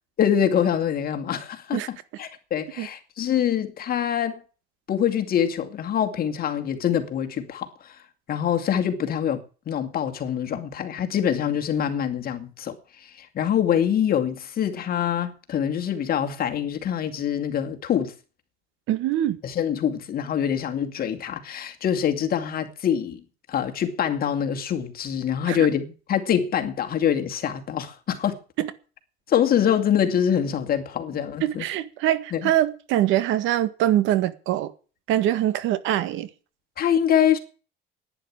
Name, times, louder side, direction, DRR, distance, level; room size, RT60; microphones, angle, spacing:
voice 1, 0.2-4.4 4.9-8.0 8.3-12.8 13.0-18.1 19.4-23.2 23.5-28.4 29.3-31.6 32.3-32.5 36.8-37.4, left 9 dB, 50° left, 2.3 m, -25 dB
voice 2, 18.9-19.4 25.5-25.6 28.6-28.7 31.4-34.7 35.1-36.3, right 12 dB, 80° right, 1.7 m, -23 dB
11.0 x 10.0 x 8.7 m
cardioid pair, 115°, 20 cm